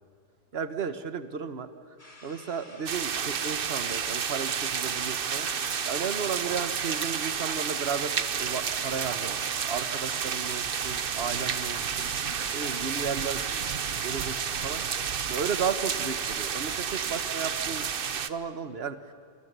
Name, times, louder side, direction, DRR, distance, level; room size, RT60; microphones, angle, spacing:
voice 1, 0.5-1.7 2.2-5.5 5.9-12.1 12.5-13.7 14.0-14.4 14.6-14.8 15.3-17.9 18.1-19.0, right 6 dB, 35° right, 10 dB, 1.2 m, -34 dB
sound 1, 2.0-15.2, left 1 dB, 25° left, 3.0 m, -50 dB
sound 2, 2.9-18.3, right 7 dB, 90° right, 0.4 m, -31 dB
sound 3, 4.8-8.1 8.4-8.8 9.5-9.6, right 5 dB, 70° right, 2.4 m, -52 dB
29.0 x 24.0 x 8.2 m, 2.2 s
omnidirectional pair, 2.2 m